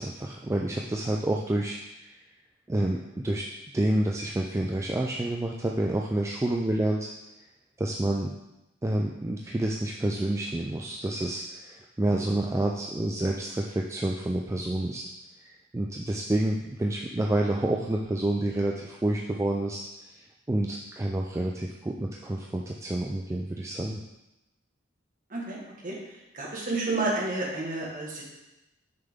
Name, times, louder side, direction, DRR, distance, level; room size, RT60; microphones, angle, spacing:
voice 1, 0.0-2.1 2.7-3.0 3.2-3.4 3.7-7.1 7.8-8.3 8.8-15.0 15.4-19.8 20.1-24.0, right 1 dB, 15° right, 0 dB, 0.3 m, -28 dB
voice 2, 26.3-28.3, right 2 dB, 40° right, -3 dB, 1.5 m, -30 dB
6.7 x 5.5 x 3.6 m, 0.96 s
head